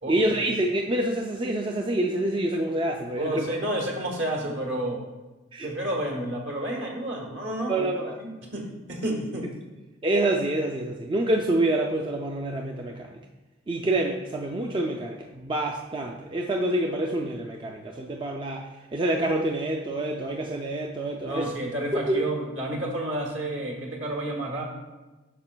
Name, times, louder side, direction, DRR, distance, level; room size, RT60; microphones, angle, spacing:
voice 1, 0.1-3.5 5.5-5.7 7.7-8.2 10.0-13.2 13.7-21.5 21.9-22.2, right 1 dB, 25° right, 1 dB, 0.3 m, -27 dB
voice 2, 3.2-5.0 5.6-9.5 21.2-24.6, right 1 dB, 65° right, 0 dB, 1.3 m, -30 dB
8.4 x 5.8 x 2.2 m, 1.2 s
head